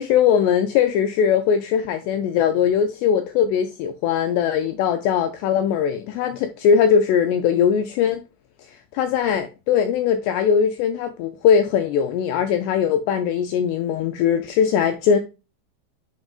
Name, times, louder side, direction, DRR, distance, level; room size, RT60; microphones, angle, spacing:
voice 1, 0.0-8.2 9.0-15.2, left 7 dB, 85° left, 2.4 m, -20 dB
9.8 x 5.0 x 2.4 m
omnidirectional pair, 5.5 m